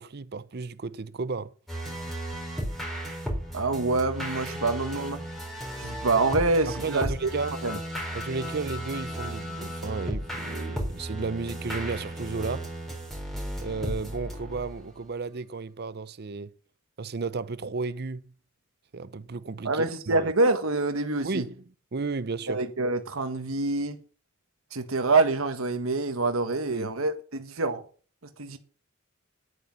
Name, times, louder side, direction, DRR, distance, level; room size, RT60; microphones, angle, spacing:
voice 1, 0.0-1.5 6.7-7.6 8.1-12.7 13.6-16.5 17.0-18.2 18.9-20.3 21.2-21.6 21.9-22.6 26.7-26.9, right 4 dB, 50° right, 0.6 m, -33 dB
sound 1, 1.7-15.0, equal, ahead, 4.1 m, -35 dB
voice 2, 3.5-5.2 5.8-7.3 7.6-7.8 19.6-21.4 22.5-24.0 24.7-27.8 28.4-28.6, right 3 dB, 85° right, 1.5 m, -26 dB
9.9 x 9.3 x 7.5 m
head